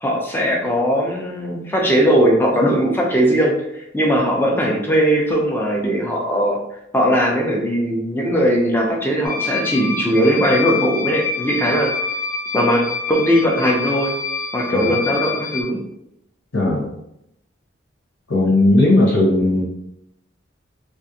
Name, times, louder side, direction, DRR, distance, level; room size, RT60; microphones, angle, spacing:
voice 1, 0.0-3.5 3.9-6.6 6.9-11.9 12.5-14.1 14.5-15.8 18.4-18.5, equal, 10° left, -1 dB, 0.5 m, -19 dB
sound 1, 9.2-15.6, left 4 dB, 50° left, 0.7 m, -26 dB
voice 2, 16.5-16.9 18.3-19.6, left 2 dB, 70° left, -6 dB, 1.0 m, -16 dB
3.6 x 2.5 x 2.7 m, 0.80 s
head